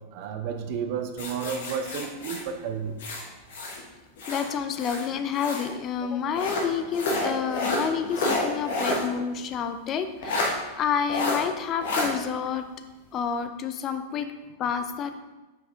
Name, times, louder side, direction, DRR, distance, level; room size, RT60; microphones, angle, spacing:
voice 1, 0.1-3.0 8.9-9.0, right 7 dB, 45° right, 6 dB, 0.6 m, -32 dB
sound 1, 1.2-3.8 4.2-5.7 6.3-9.1 9.4-9.5 10.2-10.5 11.1-11.4 11.8-12.1, left 2 dB, 55° left, 1.2 m, -29 dB
voice 2, 4.3-12.7 13.1-14.3 14.6-15.1, left 7 dB, 30° left, 8 dB, 0.5 m, -29 dB
6.1 x 4.9 x 3.6 m, 1.1 s
figure-of-eight pair, 90°, 0 cm